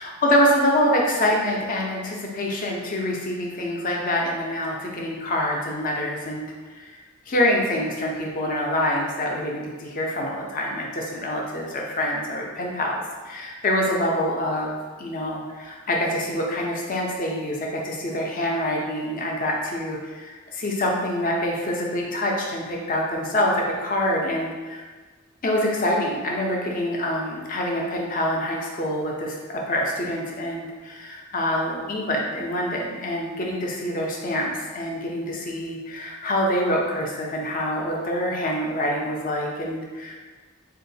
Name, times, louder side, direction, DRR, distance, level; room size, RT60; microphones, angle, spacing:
voice 1, 0.0-24.8 25.4-40.1, left 1 dB, 40° left, -1 dB, 0.5 m, -26 dB
3.7 x 2.4 x 2.6 m, 1.4 s
head